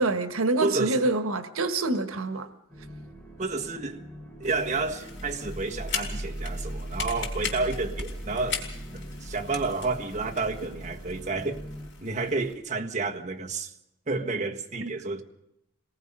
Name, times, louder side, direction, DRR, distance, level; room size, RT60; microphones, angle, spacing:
voice 1, 0.0-2.5 14.8-14.9, right 2 dB, 90° right, 1.4 m, -26 dB
voice 2, 0.6-1.1 3.4-4.0 4.4-8.6 8.9-11.6 12.0-13.7 14.1-15.2, right 3 dB, 35° right, 1.5 m, -30 dB
sound 1, 2.7-11.9, right 1 dB, 5° left, 4.9 m, -39 dB
sound 2, 4.4-12.5, left 6 dB, 60° left, 4.7 m, -39 dB
26.0 x 19.0 x 5.5 m
head